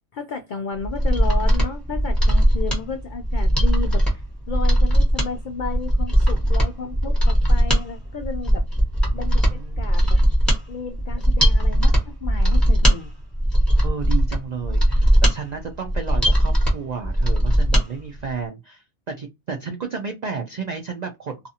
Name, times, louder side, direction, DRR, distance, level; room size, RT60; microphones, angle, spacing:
voice 1, 0.1-8.6 9.1-10.2 10.7-13.1, left 5 dB, 80° left, 0.4 m, -33 dB
Mechanisms, 0.8-17.9 18.2-18.3, equal, ahead, 1.2 m, -19 dB
voice 2, 9.5-9.9 13.8-21.5, right 5 dB, 90° right, 0.3 m, -32 dB
2.6 x 2.4 x 2.7 m
omnidirectional pair, 1.4 m